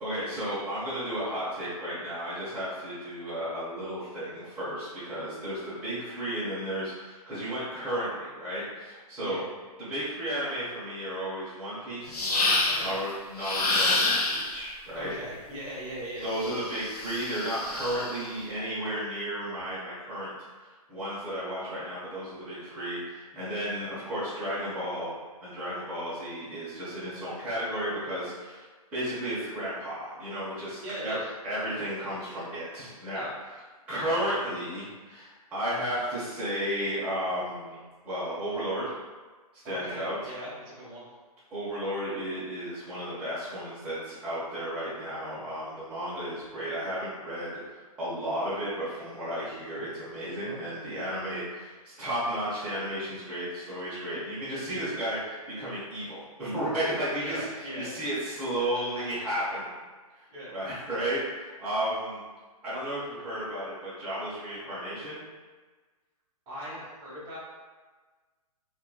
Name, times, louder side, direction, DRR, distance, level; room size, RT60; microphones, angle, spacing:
voice 1, 0.0-9.4 9.8-12.4 12.8-15.1 16.2-20.3 20.6-25.1 25.4-28.6 28.9-31.2 31.4-33.3 33.9-39.0 39.6-40.2 41.5-59.8 60.1-62.2 62.6-65.2, equal, 5° right, -13 dB, 0.6 m, -33 dB
sound 1, 12.1-13.0 13.4-14.6 16.3-18.2, left 2 dB, 85° left, 0.6 m, -28 dB
voice 2, 12.6-13.0 14.9-16.2 30.8-31.3 33.1-33.3 39.6-41.1 57.2-57.9 60.3-60.5 66.5-67.4, right 1 dB, 20° right, -7 dB, 1.1 m, -39 dB
2.8 x 2.4 x 2.2 m, 1.4 s
hypercardioid pair, 150°, 20 cm